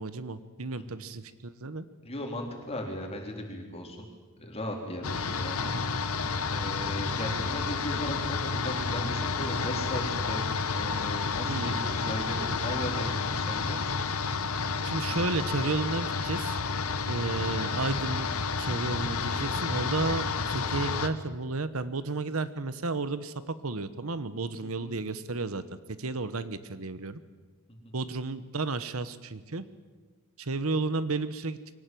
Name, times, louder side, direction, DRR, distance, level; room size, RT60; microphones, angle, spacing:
voice 1, 0.0-1.8 11.4-12.1 14.8-16.6 17.1-18.3 18.6-25.6 25.9-27.2 27.9-29.6 30.4-31.8, right 3 dB, 70° right, 13 dB, 1.1 m, -32 dB
voice 2, 2.0-4.1 4.4-5.7 6.5-10.5 10.7-14.0 24.6-25.0, left 1 dB, 30° left, 2 dB, 4.0 m, -37 dB
sound 1, 5.0-21.1, left 4 dB, 75° left, 1.3 m, -30 dB
23.0 x 18.0 x 9.3 m, 1.4 s
head